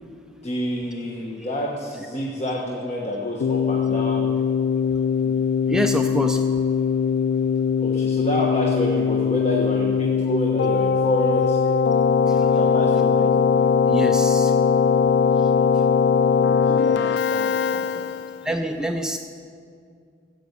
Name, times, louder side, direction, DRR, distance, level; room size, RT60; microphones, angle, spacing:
voice 1, 0.4-4.4 5.2-5.4 7.8-11.6 12.6-13.3 16.8-18.1, left 1 dB, 40° left, -2 dB, 1.2 m, -28 dB
Keyboard (musical), 3.4-18.5, left 6 dB, 65° left, 0.3 m, -20 dB
voice 2, 5.7-6.4 12.3-12.5 13.9-14.5 16.7-17.2 18.4-19.2, equal, 5° right, 4 dB, 0.4 m, -26 dB
14.0 x 8.0 x 8.2 m, 2.3 s
head